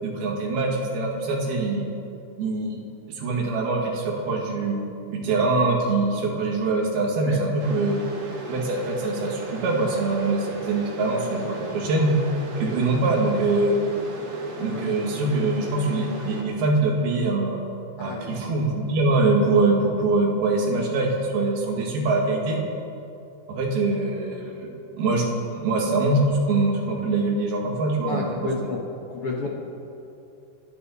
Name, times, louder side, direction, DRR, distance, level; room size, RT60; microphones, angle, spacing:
voice 1, 0.0-1.8 2.4-2.8 3.1-4.8 5.1-8.0 8.5-12.2 12.6-13.8 14.6-17.6 18.0-22.6 23.5-24.7 25.0-25.3 25.5-28.4, right 2 dB, 70° right, -1 dB, 3.7 m, -23 dB
sound 1, 7.6-16.4, right 2 dB, 45° right, 2.1 m, -36 dB
voice 2, 18.0-18.4 28.1-29.5, left 3 dB, 70° left, -2 dB, 1.3 m, -31 dB
29.0 x 11.0 x 4.2 m, 2.7 s
omnidirectional pair, 4.6 m